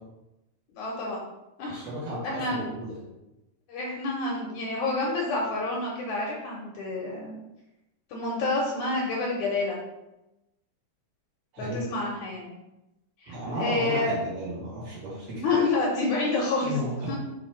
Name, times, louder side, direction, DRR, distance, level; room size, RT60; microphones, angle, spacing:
voice 1, 0.8-1.2 1.6-1.9 2.2-2.7 3.7-7.3 8.1-9.8 11.6-12.5 13.2-14.1 15.4-16.8 17.1-17.2, left 2 dB, 70° left, -3 dB, 2.0 m, -28 dB
voice 2, 1.7-3.0 11.5-11.8 13.3-15.6 16.6-17.2, equal, 70° right, -8 dB, 4.0 m, -34 dB
7.0 x 3.2 x 5.1 m, 0.95 s
omnidirectional pair, 4.5 m